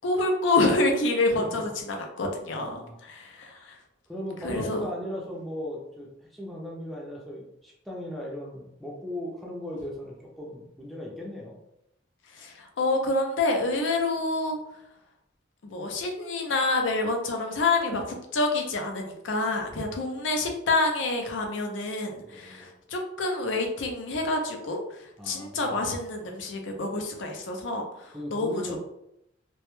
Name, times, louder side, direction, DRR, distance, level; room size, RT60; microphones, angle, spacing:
voice 1, 0.0-3.7 4.4-4.9 12.4-14.6 15.6-24.8 25.2-27.8 28.3-28.8, left 2 dB, 75° left, 3 dB, 0.5 m, -27 dB
voice 2, 2.5-3.0 4.1-11.6 19.7-20.0 22.2-22.7 25.2-25.8 28.1-28.8, left 1 dB, ahead, -3 dB, 0.4 m, -37 dB
2.1 x 2.0 x 3.0 m, 0.82 s
head